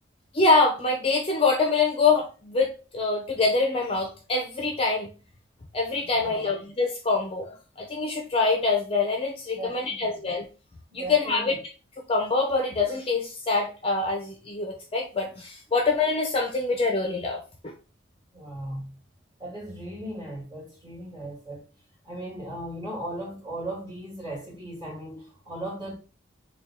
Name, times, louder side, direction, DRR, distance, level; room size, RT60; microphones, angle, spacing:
voice 1, 0.3-5.1 5.7-10.5 10.9-11.6 12.1-17.7, left 3 dB, 30° left, 0.6 m, -25 dB
voice 2, 6.1-6.5 9.5-10.1 10.9-11.6 18.3-18.9 19.4-21.6 22.0-25.9, right 1 dB, 20° right, 2.1 m, -37 dB
3.7 x 2.3 x 4.2 m
head